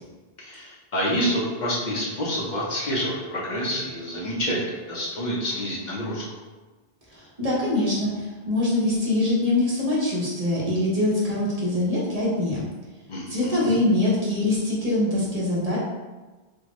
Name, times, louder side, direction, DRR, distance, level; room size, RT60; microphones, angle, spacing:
voice 1, 0.4-6.2 13.1-13.8, equal, 50° left, -3 dB, 0.8 m, -28 dB
voice 2, 7.1-12.6 13.3-15.8, left 2 dB, 40° right, -6 dB, 0.9 m, -23 dB
3.7 x 2.2 x 3.0 m, 1.2 s
omnidirectional pair, 1.1 m